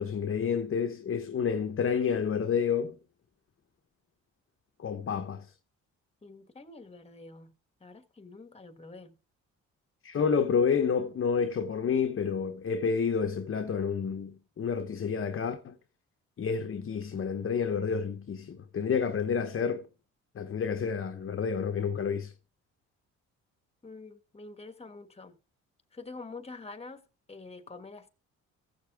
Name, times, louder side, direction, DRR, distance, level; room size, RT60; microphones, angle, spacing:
voice 1, 0.0-3.0 4.8-5.5 10.0-15.7 16.4-19.9 20.3-22.3, left 6 dB, 45° left, 1.0 m, -29 dB
voice 2, 6.2-7.5 7.8-9.2 23.8-25.4 25.9-27.0 27.3-28.1, left 3 dB, 20° left, 1.4 m, -46 dB
15.0 x 6.9 x 3.5 m
cardioid pair, 90°, 30 cm